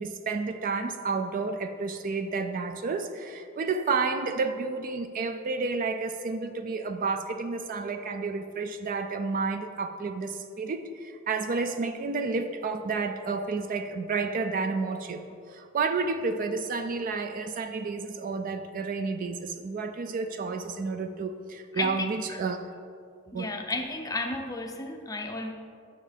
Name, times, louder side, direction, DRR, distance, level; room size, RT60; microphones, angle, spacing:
voice 1, 0.0-22.7 23.3-23.5, right 4 dB, 40° right, 8 dB, 0.3 m, -31 dB
voice 2, 21.7-22.4 23.3-25.5, left 2 dB, 15° left, 3 dB, 0.5 m, -33 dB
9.4 x 6.3 x 3.4 m, 2.4 s
head